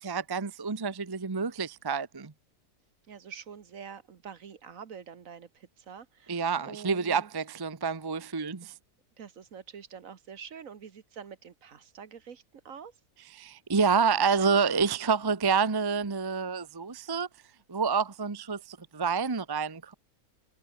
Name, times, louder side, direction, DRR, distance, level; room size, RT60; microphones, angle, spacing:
voice 1, 0.0-2.3 6.3-8.7 13.4-17.3 17.7-19.9, right 5 dB, 20° right, 0.7 m, -28 dB
voice 2, 3.1-7.3 8.6-8.7 9.2-12.9, right 7 dB, 60° right, 1.6 m, -46 dB
omnidirectional pair, 1.6 m